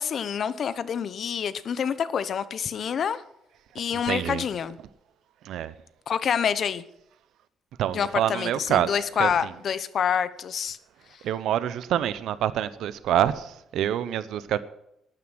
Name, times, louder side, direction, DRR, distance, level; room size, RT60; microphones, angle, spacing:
voice 1, 0.0-3.2 3.7-4.8 6.1-6.8 7.9-10.8, left 7 dB, 60° left, 0.9 m, -27 dB
voice 2, 3.9-4.4 5.4-5.7 7.8-9.5 11.2-14.6, right 11 dB, 80° right, 0.7 m, -27 dB
12.0 x 9.4 x 6.3 m
cardioid pair, 90°, 0 cm